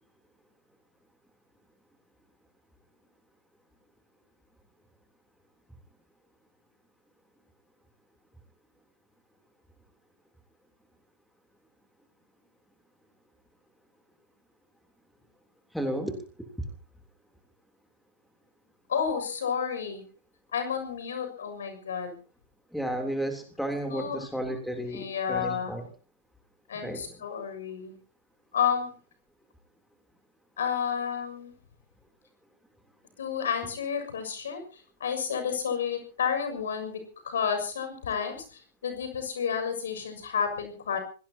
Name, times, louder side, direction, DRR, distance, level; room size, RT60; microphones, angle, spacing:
voice 1, 15.7-16.2 22.7-25.9 26.8-27.1, right 1 dB, ahead, 5 dB, 3.4 m, -32 dB
voice 2, 18.9-20.0 20.5-22.1 23.9-24.3 24.9-25.8 26.7-28.0 28.5-28.9 30.6-31.6 33.2-41.0, left 7 dB, 70° left, 7 dB, 6.7 m, -31 dB
26.0 x 18.0 x 2.9 m, 0.38 s
hypercardioid pair, 115°, 0 cm